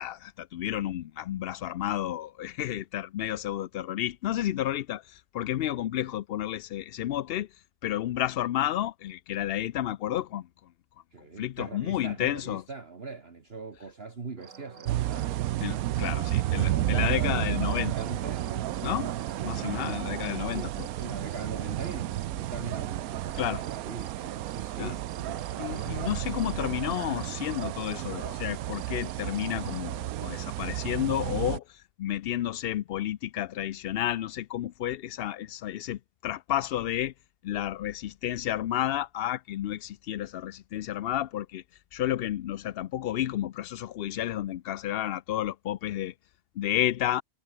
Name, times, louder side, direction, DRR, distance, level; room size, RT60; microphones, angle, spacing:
voice 1, 0.0-7.5 7.8-10.5 11.4-12.6 15.6-17.9 18.8-19.1 19.4-20.9 23.4-23.6 24.8-24.9 25.6-37.1 37.4-41.6 41.9-46.1 46.6-47.2, left 12 dB, 75° left, 0.5 m, -31 dB
voice 2, 11.1-18.5 19.3-26.2, right 4 dB, 45° right, 2.0 m, -42 dB
sound 1, 14.4-29.9, right 6 dB, 60° right, 1.9 m, -47 dB
sound 2, 14.9-31.6, right 14 dB, 85° right, 1.1 m, -32 dB
omnidirectional pair, 1.5 m